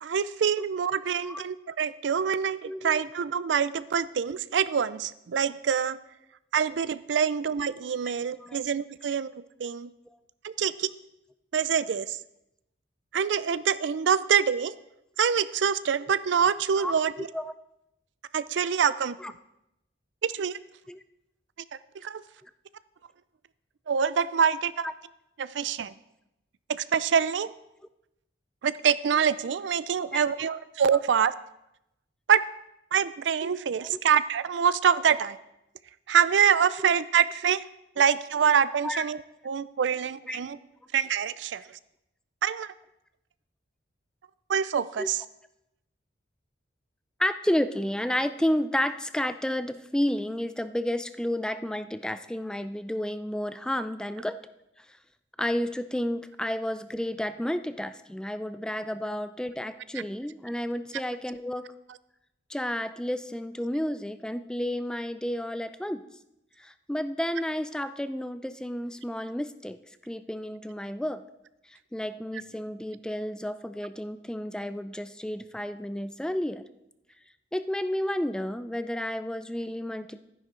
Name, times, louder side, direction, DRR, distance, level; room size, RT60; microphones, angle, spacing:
voice 1, 0.0-6.0 6.5-9.3 9.6-9.9 10.4-10.9 11.5-12.2 13.1-14.7 15.2-17.3 18.3-19.1 20.2-20.6 22.0-22.2 23.9-24.9 25.4-25.9 26.7-27.5 28.6-31.3 32.3-32.4 32.9-35.4 36.1-37.6 38.0-39.2 39.4-40.6 40.9-41.6 42.4-42.7 44.5-45.2 59.9-60.0, right 7 dB, 75° right, 16 dB, 0.4 m, -25 dB
voice 2, 2.7-3.0 8.4-8.6 16.8-16.9 17.2-17.5 19.2-19.3 20.9-21.0 30.0-30.2 30.9-31.0 33.8-34.0 38.8-39.0 40.3-40.4 45.0-45.1 47.2-54.4 55.4-61.6 62.5-66.0 66.6-69.8 70.0-71.2 71.9-76.6 77.5-80.2, left 1 dB, 5° left, 11 dB, 0.3 m, -31 dB
12.5 x 10.0 x 3.8 m, 0.86 s
head